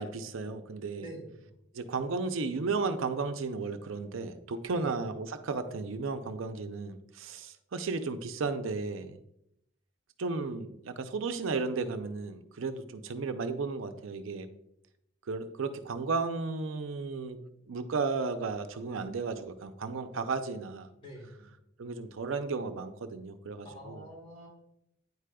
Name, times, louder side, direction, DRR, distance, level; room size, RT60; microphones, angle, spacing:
voice 1, 0.0-1.1 1.7-9.2 10.2-14.5 15.3-17.4 17.7-20.9 21.8-24.0, right 4 dB, 85° right, 9 dB, 0.5 m, -34 dB
voice 2, 1.0-1.5 4.7-4.9 21.0-21.5 23.7-24.5, equal, 25° left, -3 dB, 2.3 m, -46 dB
9.3 x 4.9 x 2.2 m, 0.78 s
head